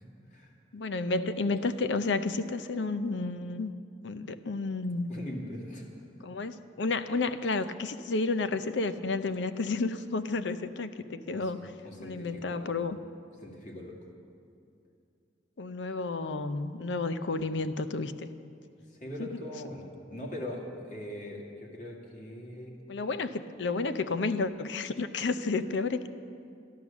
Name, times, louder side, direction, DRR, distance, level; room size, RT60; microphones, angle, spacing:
voice 1, 0.7-3.7 4.0-5.1 6.2-11.7 12.0-13.0 15.6-18.3 19.2-19.3 22.9-26.1, left 3 dB, 85° left, 12 dB, 0.6 m, -31 dB
voice 2, 5.1-5.9 11.3-11.5 11.8-12.7 13.4-14.0 19.0-22.7, left 1 dB, 45° left, 0 dB, 2.2 m, -41 dB
12.5 x 11.5 x 7.1 m, 2.5 s
head